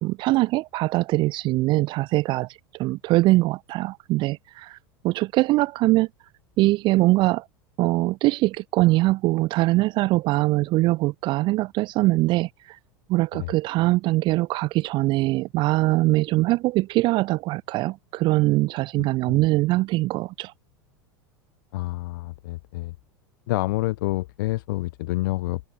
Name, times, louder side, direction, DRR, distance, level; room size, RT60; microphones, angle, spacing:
voice 1, 0.0-4.8 5.0-6.1 6.6-7.5 7.8-12.8 13.1-20.5, right 19 dB, 40° right, 0.5 m, -22 dB
voice 2, 19.0-19.4 21.7-22.9 23.5-25.7, left 19 dB, 60° left, 3.1 m, -28 dB
open air
figure-of-eight pair, 80°, 12 cm